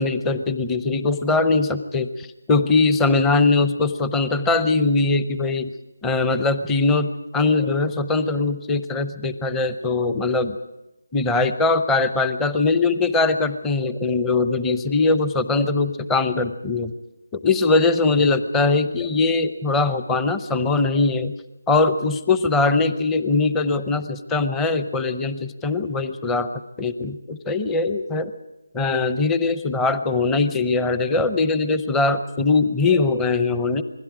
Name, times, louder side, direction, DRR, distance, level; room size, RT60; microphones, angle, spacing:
voice 1, 0.0-5.7 6.0-10.6 11.1-16.9 17.3-21.3 21.7-26.5 26.8-28.3 28.7-33.8, left 3 dB, 10° left, 11 dB, 0.8 m, -21 dB
27.5 x 21.5 x 5.0 m, 0.95 s
figure-of-eight pair, 160°, 0 cm